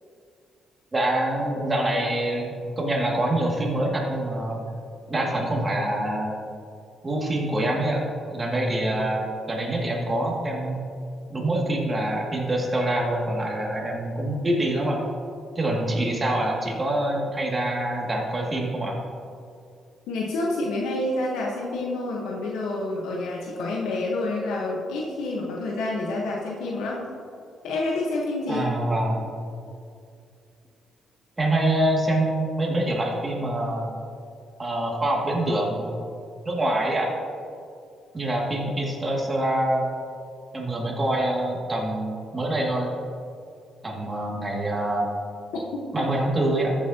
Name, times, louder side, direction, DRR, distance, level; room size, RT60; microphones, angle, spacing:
voice 1, 0.9-4.6 5.1-6.3 7.0-10.8 11.3-15.0 15.5-19.0 28.5-29.3 31.4-33.9 34.6-35.9 36.5-37.1 38.1-39.9 40.5-42.9 43.8-45.1 45.9-46.8, right 1 dB, 25° right, -2 dB, 2.2 m, -25 dB
voice 2, 20.1-27.0 27.6-28.7 45.7-45.8, left 2 dB, 90° left, -2 dB, 1.1 m, -28 dB
14.0 x 7.3 x 2.9 m, 2.4 s
cardioid pair, 90°, 0 cm